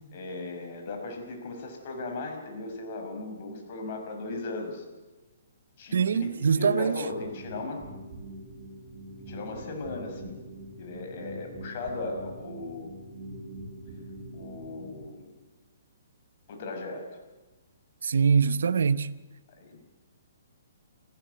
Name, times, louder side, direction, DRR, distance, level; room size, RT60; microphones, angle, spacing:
voice 1, 0.1-4.8 5.8-7.8 9.3-10.4 10.8-12.9 14.3-15.3 16.5-17.1 19.6-19.8, left 3 dB, 45° left, 5.5 m, -37 dB
voice 2, 5.9-7.0 18.0-19.1, right 6 dB, 75° right, 0.9 m, -23 dB
sound 1, 7.1-15.0, right 1 dB, 40° right, 7.8 m, -43 dB
29.0 x 14.5 x 8.1 m
hypercardioid pair, 150°, 0 cm